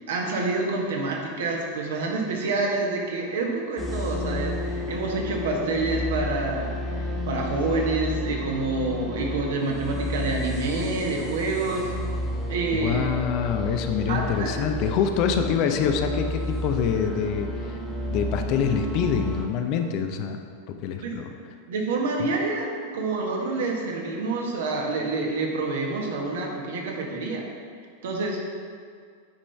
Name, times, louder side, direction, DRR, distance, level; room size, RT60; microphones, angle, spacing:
voice 1, 0.1-6.7 7.3-11.9 12.5-13.1 14.1-14.6 21.0-21.1 21.7-27.4 28.0-28.4, right 3 dB, 60° right, 0 dB, 1.2 m, -27 dB
sound 1, 3.8-19.4, left 1 dB, 5° left, 1.2 m, -31 dB
voice 2, 12.7-17.8 18.1-20.4 20.7-21.3 22.2-22.3, left 7 dB, 40° left, 6 dB, 0.5 m, -25 dB
8.9 x 5.3 x 3.3 m, 2.1 s
figure-of-eight pair, 90°, 0 cm